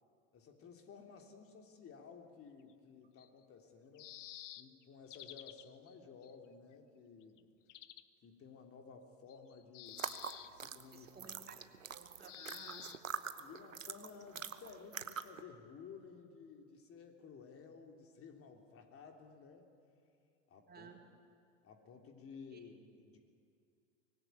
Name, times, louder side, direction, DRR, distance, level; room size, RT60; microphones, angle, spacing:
voice 1, 0.3-4.1 4.5-7.4 8.2-10.0 10.4-11.6 13.4-19.7 20.5-20.9 21.6-23.2, left 5 dB, 35° left, 4 dB, 3.3 m, -55 dB
sound 1, 2.7-2.8 3.2-3.3 3.9-5.9 6.2-6.3 6.7-6.8 7.2-7.4 7.7-8.0 9.3-10.5 12.2-13.0, left 13 dB, 70° left, 1.1 m, -51 dB
sound 2, 9.9-15.4, right 7 dB, 90° right, 1.1 m, -45 dB
voice 2, 10.9-11.6 11.9-12.9 20.7-21.0 22.5-22.6, right 6 dB, 25° right, 3 dB, 3.1 m, -56 dB
24.5 x 19.0 x 9.4 m, 2.4 s
hypercardioid pair, 85°, 38 cm